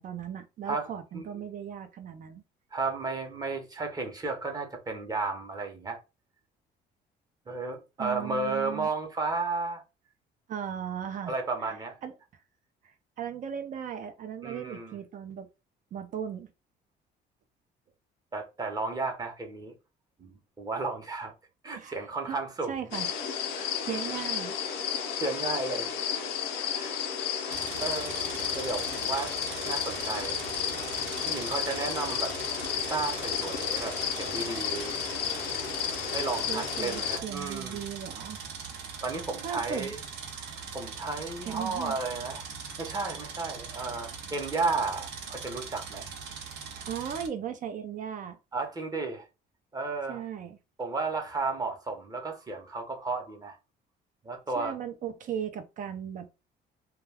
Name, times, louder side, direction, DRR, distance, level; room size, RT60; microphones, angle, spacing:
voice 1, 0.0-2.4 8.0-8.9 10.5-11.4 11.6-11.8 12.0-12.1 12.8-15.5 15.9-16.5 21.7-22.0 22.2-22.4 22.7-23.1 23.8-24.6 36.5-38.4 39.4-39.9 41.5-42.0 46.8-48.4 50.1-50.6 54.6-56.3, right 8 dB, 50° right, 0.5 m, -37 dB
voice 2, 0.7-1.3 2.7-6.0 7.5-9.8 11.3-12.0 14.4-15.0 18.3-19.7 20.2-21.3 21.6-22.9 23.5-23.7 24.9-26.4 26.8-26.9 27.5-28.3 28.5-29.3 29.7-30.4 31.3-32.3 32.9-35.0 36.1-37.8 39.0-40.0 40.3-42.4 42.8-46.1 48.5-49.2 49.7-50.2 50.8-53.6 54.2-54.8, right 3 dB, 20° right, 0.8 m, -33 dB
sound 1, 22.9-37.2, left 8 dB, 80° left, 0.5 m, -32 dB
sound 2, 27.5-47.3, right 6 dB, 85° right, 0.7 m, -41 dB
2.2 x 2.2 x 3.3 m
cardioid pair, 110°, 17 cm